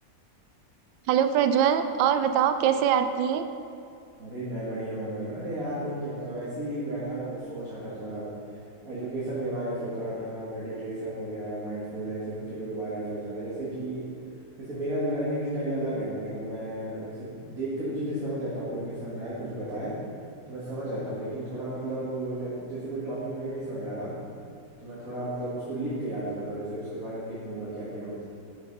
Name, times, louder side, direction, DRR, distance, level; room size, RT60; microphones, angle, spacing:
voice 1, 1.1-3.5, right 8 dB, 85° right, 9 dB, 1.3 m, -23 dB
voice 2, 4.2-8.3 8.8-14.0 14.6-19.9 20.5-24.1 24.8-28.2, right 1 dB, 50° right, -10 dB, 2.3 m, -33 dB
10.0 x 6.5 x 5.3 m, 2.6 s
omnidirectional pair, 2.0 m